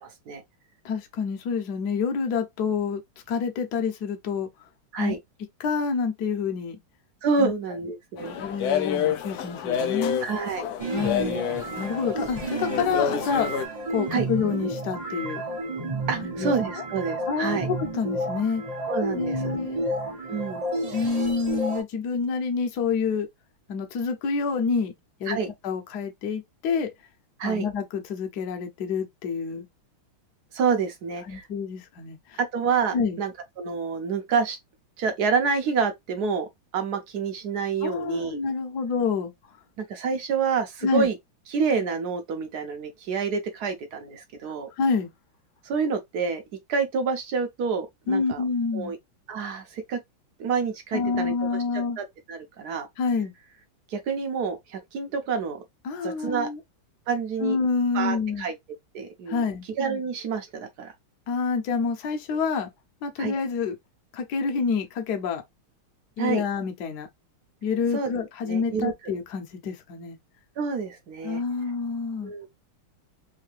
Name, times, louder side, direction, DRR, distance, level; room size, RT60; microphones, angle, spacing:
voice 1, 0.0-0.4 4.9-5.2 7.2-8.4 10.2-10.7 14.1-14.3 16.1-17.7 18.9-19.6 20.3-20.6 25.3-25.5 27.4-27.7 30.5-31.5 32.4-33.3 33.6-34.6 35.0-36.5 36.7-38.4 39.8-41.1 41.5-44.7 45.6-46.4 46.7-48.4 48.7-49.0 49.3-50.0 50.4-51.3 52.0-52.9 53.9-55.6 56.0-56.5 57.1-57.6 57.9-58.5 58.9-59.4 59.8-60.9 63.2-63.3 66.2-66.4 67.9-68.1 68.5-69.1 70.6-71.4 72.2-72.5, right 5 dB, 65° right, 1.1 m, -28 dB
voice 2, 0.8-3.0 3.3-4.5 5.0-5.1 5.6-6.8 7.4-7.5 8.3-10.2 10.9-13.5 13.9-15.4 16.2-16.8 17.3-18.6 19.1-19.8 20.9-23.3 23.7-24.9 25.2-25.4 25.6-26.9 27.4-29.7 31.3-32.4 32.9-33.2 37.8-39.3 40.8-41.1 44.8-45.1 48.1-49.0 50.9-52.0 53.0-53.3 55.8-56.6 57.4-58.5 59.3-59.6 61.3-62.7 63.0-63.7 64.1-65.4 66.2-67.1 67.6-70.2 71.2-72.3, left 5 dB, 60° left, 1.2 m, -28 dB
sound 1, 8.2-13.6, left 8 dB, 90° left, 0.8 m, -29 dB
sound 2, 10.8-21.8, right 1 dB, 35° right, 0.6 m, -31 dB
3.6 x 2.8 x 3.2 m
omnidirectional pair, 2.3 m